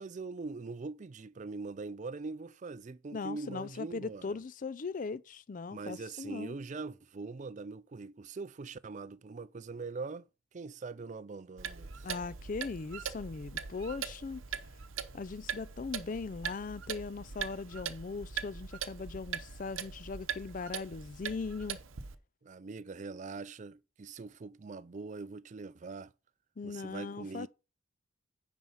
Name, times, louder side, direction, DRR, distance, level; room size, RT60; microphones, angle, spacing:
voice 1, 0.0-4.4 5.7-10.3 10.5-12.1 22.4-26.1 26.6-27.5, right 3 dB, 35° right, 0.4 m, -42 dB
voice 2, 3.1-6.6 12.0-14.4 15.1-21.8 26.6-27.5, left 4 dB, 40° left, 0.4 m, -39 dB
Clock, 11.6-22.1, right 7 dB, 85° right, 0.8 m, -41 dB
9.6 x 4.5 x 5.5 m
head